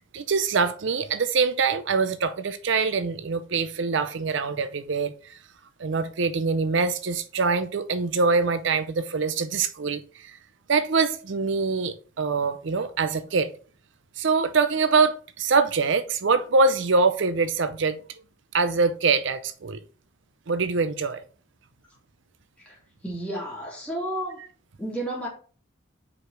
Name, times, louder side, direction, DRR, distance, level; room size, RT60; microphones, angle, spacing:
voice 1, 0.1-5.4 5.8-10.4 10.7-13.5 14.2-18.0 18.5-19.8 20.5-21.2, right 4 dB, 65° right, 0.6 m, -24 dB
voice 2, 23.0-24.4 24.8-25.3, right 1 dB, 5° left, 3.1 m, -31 dB
4.9 x 4.9 x 5.8 m
head